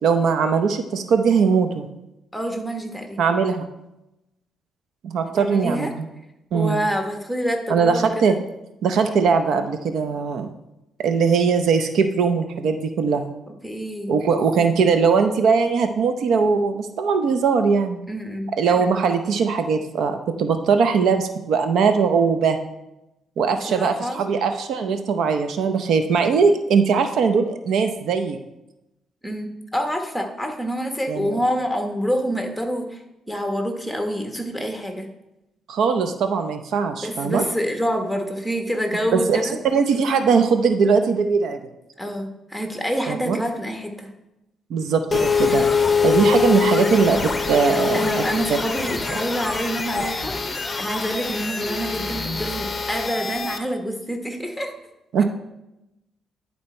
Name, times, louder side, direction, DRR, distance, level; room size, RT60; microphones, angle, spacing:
voice 1, 0.0-1.9 3.2-3.7 5.0-6.1 6.5-6.8 7.7-8.4 8.8-10.5 11.0-13.3 14.1-18.0 18.6-22.6 23.4-28.4 31.1-31.4 35.7-37.4 39.1-41.6 43.1-43.4 44.7-45.7 46.0-48.2 55.1-55.2, right 5 dB, 70° right, 7 dB, 0.6 m, -20 dB
voice 2, 2.3-3.3 5.4-5.9 6.5-8.1 13.6-14.2 18.1-18.5 23.5-24.2 29.2-33.0 33.3-35.1 37.0-39.6 42.0-44.1 47.9-54.7, equal, ahead, 3 dB, 1.2 m, -27 dB
sound 1, 45.1-53.6, left 5 dB, 25° left, 0.7 m, -24 dB
10.5 x 4.2 x 4.4 m, 0.92 s
cardioid pair, 90°, 0 cm